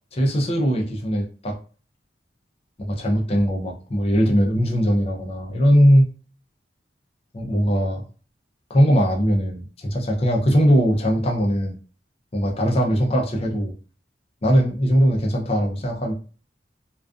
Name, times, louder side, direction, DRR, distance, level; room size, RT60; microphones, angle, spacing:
voice 1, 0.1-1.6 2.8-6.0 7.3-8.0 8.7-11.8 12.3-13.7 14.4-16.1, equal, 35° left, -1 dB, 0.5 m, -20 dB
2.3 x 2.3 x 2.4 m, 0.38 s
head